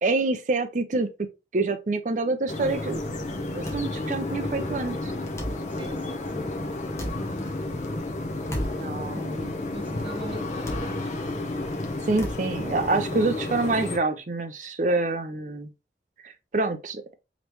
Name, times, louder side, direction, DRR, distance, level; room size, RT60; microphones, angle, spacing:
voice 1, 0.0-1.1 1.5-3.0 3.5-5.1 8.5-9.6 12.0-15.7 16.2-17.0, right 3 dB, 45° right, 0.5 m, -27 dB
sound 1, 2.5-14.0, left 2 dB, 40° left, 0.8 m, -31 dB
sound 2, 3.6-13.0, equal, 15° left, 0.9 m, -40 dB
voice 2, 5.7-6.6 9.1-11.1, equal, 30° right, 1.3 m, -41 dB
5.1 x 3.1 x 3.0 m
head